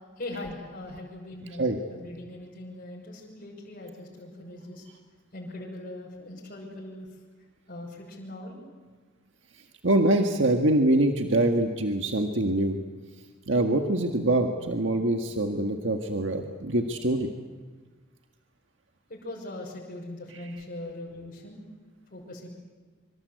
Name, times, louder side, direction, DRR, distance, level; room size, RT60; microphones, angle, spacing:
voice 1, 0.2-4.8 5.3-7.1 7.7-8.6 19.1-21.6 22.1-22.5, left 1 dB, 45° left, -3 dB, 6.3 m, -40 dB
voice 2, 9.8-12.8 13.5-17.3, right 1 dB, 70° right, 4 dB, 1.8 m, -24 dB
25.0 x 25.0 x 8.2 m, 1.4 s
head